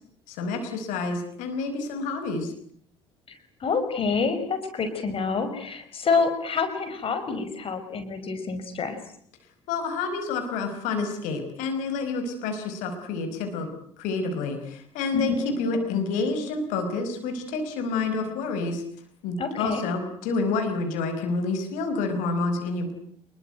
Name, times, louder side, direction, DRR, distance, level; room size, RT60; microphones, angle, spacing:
voice 1, 0.3-2.5 9.7-13.7 14.0-18.8 19.2-22.9, left 3 dB, 60° left, 7 dB, 5.1 m, -28 dB
voice 2, 3.3-9.0 15.1-15.4 19.4-19.8, left 4 dB, 40° left, 9 dB, 5.3 m, -27 dB
28.0 x 21.5 x 9.2 m, 0.63 s
figure-of-eight pair, 55°, 15 cm